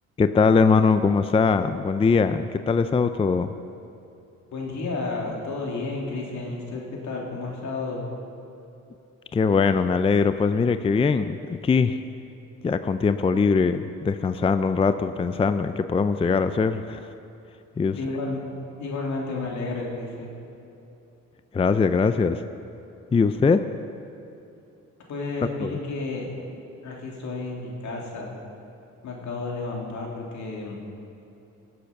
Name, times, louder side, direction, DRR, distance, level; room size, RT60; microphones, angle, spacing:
voice 1, 0.2-3.5 9.3-12.0 12.6-17.1 17.8-18.0 21.5-22.4 23.1-23.6 25.6-25.7, left 5 dB, 20° left, 11 dB, 0.4 m, -21 dB
voice 2, 4.5-8.0 17.9-18.4 18.8-20.3 25.1-26.3 26.8-28.3 29.0-30.8, left 3 dB, 70° left, -1 dB, 2.9 m, -31 dB
18.5 x 7.8 x 5.9 m, 2.8 s
cardioid pair, 90°, 30 cm